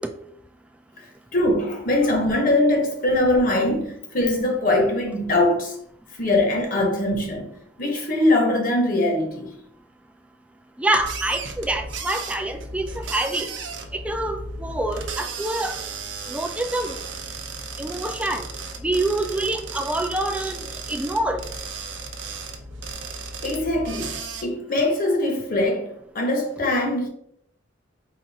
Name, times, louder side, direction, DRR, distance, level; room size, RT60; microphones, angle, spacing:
voice 1, 1.3-5.7 6.2-9.5 23.4-27.1, left 1 dB, 50° left, 0.9 m, -22 dB
voice 2, 10.8-13.5 13.9-15.8 16.3-17.0 17.8-18.4 18.8-20.6 20.9-21.4, right 1 dB, 5° right, 0.3 m, -26 dB
sound 1, 11.0-24.4, right 4 dB, 75° right, 0.6 m, -35 dB
4.1 x 2.5 x 4.0 m
head